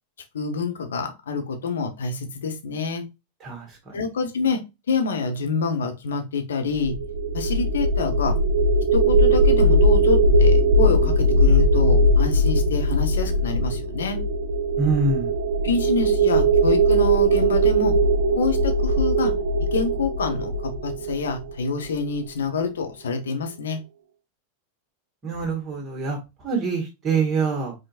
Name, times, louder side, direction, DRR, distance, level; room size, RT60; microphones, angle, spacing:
voice 1, 0.3-3.1 3.9-7.0 7.3-8.4 8.9-14.2 15.6-18.0 18.4-19.3 19.6-23.8, left 5 dB, 65° left, 5 dB, 1.1 m, -27 dB
voice 2, 3.4-4.0 14.8-15.3 25.2-27.7, right 4 dB, 25° right, 0 dB, 1.5 m, -25 dB
sound 1, 6.7-21.8, right 1 dB, 55° right, 0.7 m, -20 dB
5.4 x 3.8 x 2.5 m, 0.24 s
figure-of-eight pair, 90°, 0 cm